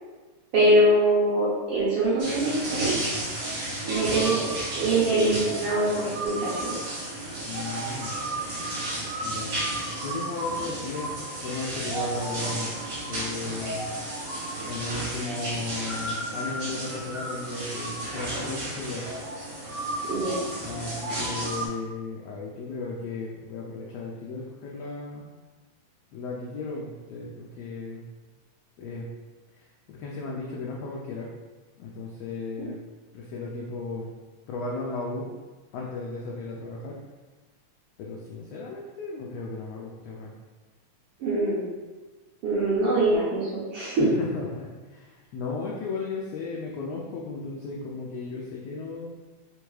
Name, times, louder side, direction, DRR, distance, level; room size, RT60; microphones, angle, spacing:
voice 1, 0.5-2.9 3.9-4.5 4.7-6.7 20.1-20.4 41.2-41.7 42.4-44.1, right 1 dB, 65° right, -8 dB, 1.5 m, -23 dB
sound 1, 2.2-21.7, right 1 dB, 50° right, 1.4 m, -32 dB
voice 2, 7.4-8.1 9.2-12.8 13.1-13.9 14.6-19.0 20.6-25.3 26.1-28.0 28.8-29.1 29.5-31.3 31.8-32.8 33.1-34.1 34.5-35.3 35.7-37.0 38.0-40.3 44.0-49.1, left 3 dB, 90° left, -3 dB, 1.4 m, -35 dB
4.6 x 3.4 x 3.2 m, 1.3 s
omnidirectional pair, 3.6 m